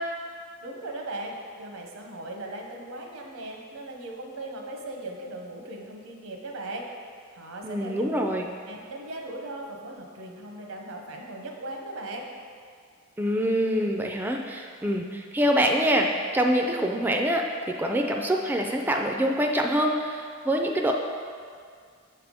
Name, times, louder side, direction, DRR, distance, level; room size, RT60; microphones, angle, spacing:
voice 1, 0.6-6.9 7.3-8.0 8.7-12.3, right 2 dB, 85° right, 1 dB, 0.8 m, -38 dB
voice 2, 7.6-8.5 13.2-16.1 16.3-17.4 17.8-20.9, equal, 10° right, 2 dB, 0.3 m, -25 dB
6.7 x 3.4 x 5.1 m, 2.1 s
head